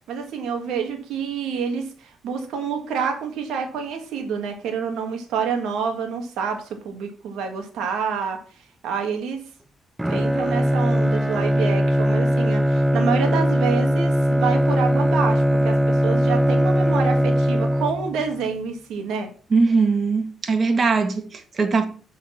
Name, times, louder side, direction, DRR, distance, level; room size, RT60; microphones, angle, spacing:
voice 1, 0.1-8.4 8.8-9.4 10.1-19.3, right 6 dB, 85° right, 1.7 m, -27 dB
Bowed string instrument, 10.0-18.3, equal, 10° right, 0.4 m, -20 dB
voice 2, 19.5-21.9, right 4 dB, 45° right, 1.7 m, -20 dB
7.3 x 6.2 x 5.9 m
cardioid pair, 90°, 0 cm